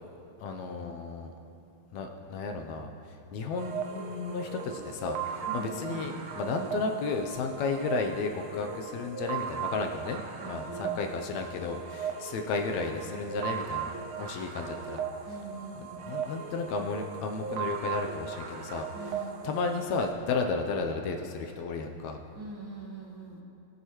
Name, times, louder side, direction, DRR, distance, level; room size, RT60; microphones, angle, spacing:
voice 1, 0.4-1.3 1.9-10.2 10.5-15.0 15.8-19.2 19.4-22.2, left 4 dB, 80° left, 3 dB, 1.9 m, -33 dB
sound 1, 3.6-20.1, right 7 dB, 70° right, 1.3 m, -38 dB
voice 2, 5.4-6.1 10.4-11.0 15.3-16.1 18.9-19.6 22.3-23.4, right 2 dB, 50° right, -4 dB, 2.0 m, -43 dB
22.0 x 8.0 x 3.1 m, 3.0 s
omnidirectional pair, 3.4 m